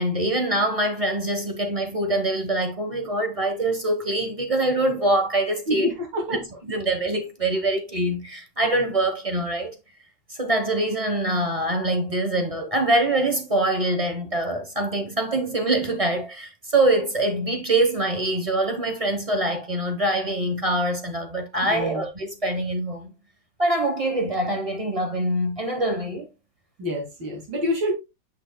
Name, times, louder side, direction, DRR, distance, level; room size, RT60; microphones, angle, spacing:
voice 1, 0.0-5.9 6.7-9.7 10.3-23.1 23.6-26.3, right 1 dB, 25° right, 0.8 m, -24 dB
voice 2, 5.7-6.4 21.6-22.0 26.8-27.9, left 1 dB, 75° right, 3.1 m, -27 dB
8.1 x 6.2 x 2.2 m
omnidirectional pair, 2.1 m